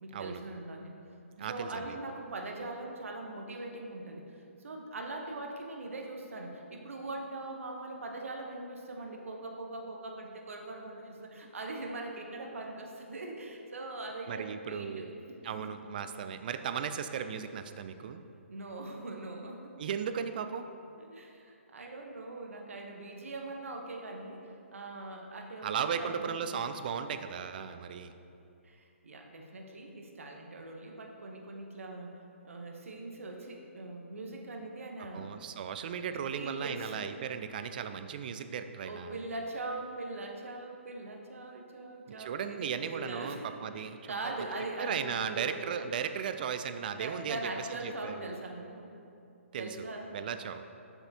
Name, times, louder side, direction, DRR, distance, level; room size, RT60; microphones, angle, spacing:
voice 1, 0.0-1.0 1.4-4.3 4.6-15.7 18.5-19.7 21.1-26.6 28.6-32.2 32.4-35.3 36.3-37.0 37.6-37.8 38.8-43.4 43.7-45.6 47.0-48.9 49.5-50.3, right 2 dB, 75° right, 2 dB, 1.0 m, -41 dB
voice 2, 1.4-1.8 14.3-15.1 15.4-18.2 19.8-20.6 25.6-28.1 35.1-39.1 42.2-44.2 44.8-47.5 47.8-48.4 49.5-49.7 50.1-50.6, right 7 dB, 40° right, 9 dB, 0.3 m, -36 dB
7.0 x 6.9 x 2.8 m, 2.6 s
hypercardioid pair, 150°, 7 cm